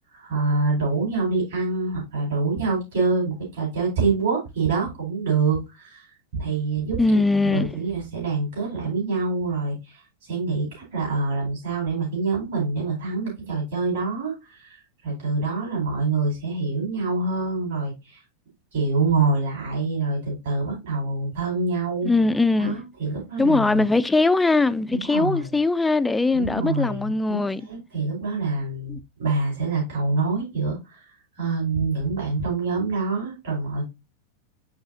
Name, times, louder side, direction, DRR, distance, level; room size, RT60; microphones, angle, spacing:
voice 1, 0.1-6.1 6.3-7.0 7.4-10.0 10.3-14.8 15.0-18.2 18.7-22.1 22.6-23.8 24.9-25.5 26.3-31.0 31.4-33.8, right 3 dB, 60° right, 5.1 m, -26 dB
voice 2, 7.0-7.8 22.0-22.8 23.4-27.6 28.9-29.0, left 3 dB, 10° left, 0.4 m, -21 dB
11.0 x 4.0 x 2.7 m
figure-of-eight pair, 90°, 0 cm